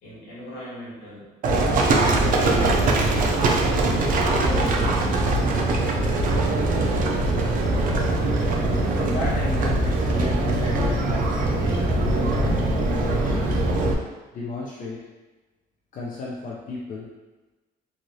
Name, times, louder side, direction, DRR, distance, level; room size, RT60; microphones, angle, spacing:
voice 1, 0.0-1.3 2.5-3.4 4.3-5.8, equal, 80° left, -7 dB, 1.4 m, -38 dB
Livestock farm animals working animals, 1.4-13.9, right 2 dB, 55° right, 0.5 m, -22 dB
voice 2, 8.4-13.6 14.3-15.0 15.9-17.1, left 2 dB, 50° left, -4 dB, 0.5 m, -33 dB
3.0 x 2.4 x 2.7 m, 1.2 s
cardioid pair, 110°, 17 cm